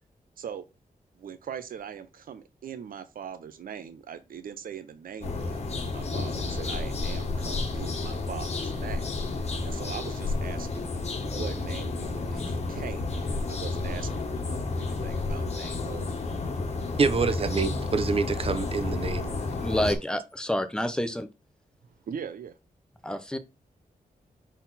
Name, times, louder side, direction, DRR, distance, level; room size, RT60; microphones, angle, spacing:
voice 1, 1.2-10.9 11.3-16.2 17.3-17.5 22.1-22.5, right 8 dB, 75° right, 0.6 m, -41 dB
sound 1, 5.2-19.9, left 3 dB, 50° left, 1.4 m, -31 dB
voice 2, 17.0-19.3, right 5 dB, 40° right, 0.7 m, -26 dB
voice 3, 19.6-21.3 23.0-23.4, equal, 5° left, 0.7 m, -28 dB
6.1 x 4.1 x 4.1 m
wide cardioid pair, 170°, 15 cm